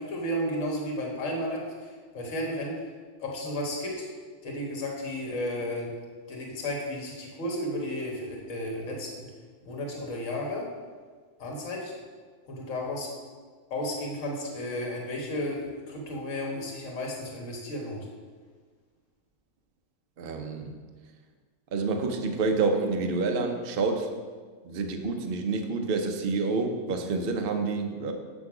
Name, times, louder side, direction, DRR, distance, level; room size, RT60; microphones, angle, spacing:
voice 1, 0.0-2.7 3.2-4.0 4.4-5.9 6.3-9.3 9.6-10.7 11.4-11.9 12.5-13.1 13.7-18.1, left 1 dB, 55° left, -1 dB, 1.7 m, -33 dB
voice 2, 20.2-20.8 21.7-24.1 24.6-28.1, right 3 dB, 50° right, 4 dB, 0.8 m, -28 dB
7.3 x 6.3 x 4.8 m, 1.5 s
omnidirectional pair, 1.6 m